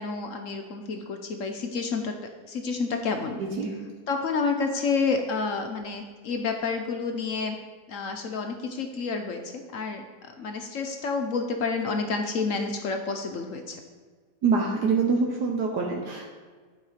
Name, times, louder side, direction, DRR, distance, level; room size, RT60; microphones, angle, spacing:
voice 1, 0.0-3.4 4.1-7.6 7.9-13.8, left 4 dB, 65° left, 4 dB, 0.8 m, -29 dB
voice 2, 3.4-3.7 14.4-16.3, right 4 dB, 70° right, 0 dB, 1.4 m, -25 dB
11.0 x 4.6 x 5.0 m, 1.5 s
omnidirectional pair, 1.9 m